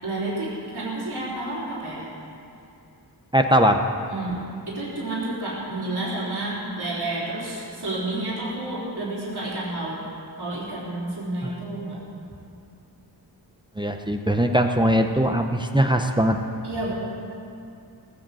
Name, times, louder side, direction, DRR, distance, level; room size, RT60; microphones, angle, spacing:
voice 1, 0.0-2.0 4.1-10.0 10.4-12.0 16.6-17.0, right 2 dB, 70° right, -8 dB, 4.0 m, -30 dB
voice 2, 3.3-3.8 11.4-11.5 13.8-16.4, equal, 10° right, 5 dB, 0.7 m, -20 dB
18.5 x 7.9 x 7.7 m, 2.6 s
wide cardioid pair, 85°, 40 cm